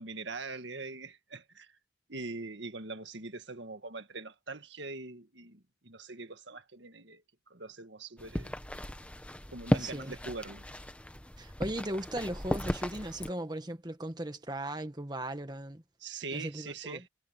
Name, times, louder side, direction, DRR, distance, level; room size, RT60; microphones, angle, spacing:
voice 1, 0.0-1.7 2.1-7.2 7.5-8.6 9.5-10.7 16.0-17.1, right 3 dB, 70° right, 1.8 m, -42 dB
sound 1, 8.2-13.3, equal, 5° left, 1.1 m, -35 dB
voice 2, 9.8-10.1 11.4-15.8 16.3-17.0, right 1 dB, 20° right, 1.6 m, -37 dB
head